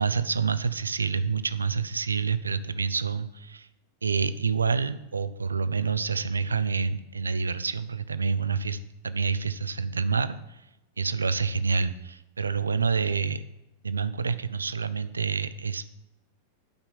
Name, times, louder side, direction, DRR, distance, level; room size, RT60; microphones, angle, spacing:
voice 1, 0.0-3.7 4.0-8.8 9.0-10.6 11.0-13.4 13.8-15.9, right 5 dB, 75° right, 14 dB, 0.4 m, -27 dB
8.8 x 5.6 x 7.0 m, 0.93 s
figure-of-eight pair, 90°, 0 cm